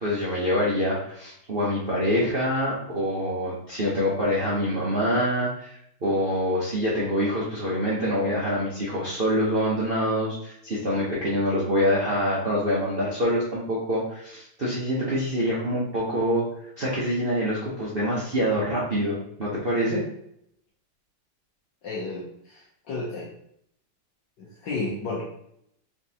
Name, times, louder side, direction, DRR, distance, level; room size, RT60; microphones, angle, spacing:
voice 1, 0.0-16.5 16.8-20.0, equal, 65° right, -7 dB, 0.5 m, -25 dB
voice 2, 21.8-23.3 24.4-25.2, left 3 dB, 65° left, -5 dB, 1.3 m, -32 dB
4.3 x 3.6 x 2.8 m, 0.73 s
omnidirectional pair, 2.4 m